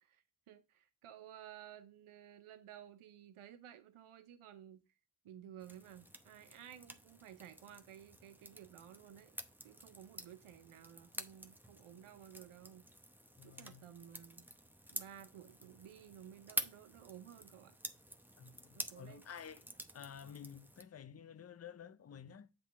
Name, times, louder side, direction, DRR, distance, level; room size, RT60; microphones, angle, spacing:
voice 1, 0.0-4.8 5.2-9.4 9.6-12.9 13.4-14.5 14.9-17.8 18.7-19.2, right 10 dB, 85° right, 0.7 m, -55 dB
sound 1, 5.6-20.8, equal, 5° right, 0.7 m, -49 dB
voice 2, 13.4-13.9 18.4-19.6 19.9-22.5, left 8 dB, 30° left, 0.6 m, -52 dB
7.8 x 2.8 x 5.5 m
cardioid pair, 45°, 49 cm